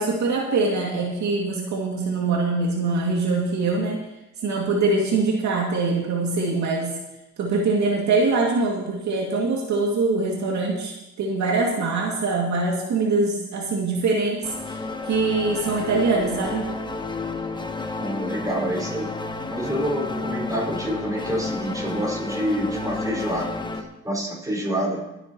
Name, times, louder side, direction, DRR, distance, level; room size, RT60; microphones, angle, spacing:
voice 1, 0.0-4.0 4.4-6.9 7.4-10.9 11.2-14.8 15.1-16.7, right 3 dB, 70° right, -2 dB, 2.3 m, -23 dB
sound 1, 14.4-23.8, left 3 dB, 15° left, 1.2 m, -31 dB
voice 2, 18.0-19.1 19.5-23.5 24.0-25.0, equal, 10° right, -3 dB, 5.0 m, -27 dB
25.0 x 9.6 x 3.0 m, 0.95 s
cardioid pair, 90°, 30 cm